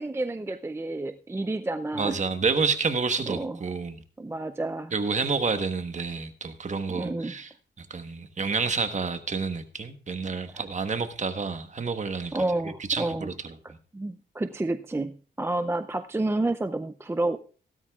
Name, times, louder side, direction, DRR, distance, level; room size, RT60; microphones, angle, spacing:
voice 1, 0.0-2.2 3.3-3.6 4.2-4.9 6.9-7.3 12.3-13.3 13.9-17.4, right 2 dB, 15° right, 0.5 m, -30 dB
voice 2, 1.9-4.0 4.9-7.5 7.8-12.4 12.9-13.5, right 4 dB, 40° right, 1.3 m, -29 dB
16.5 x 12.5 x 2.4 m
cardioid pair, 95°, 20 cm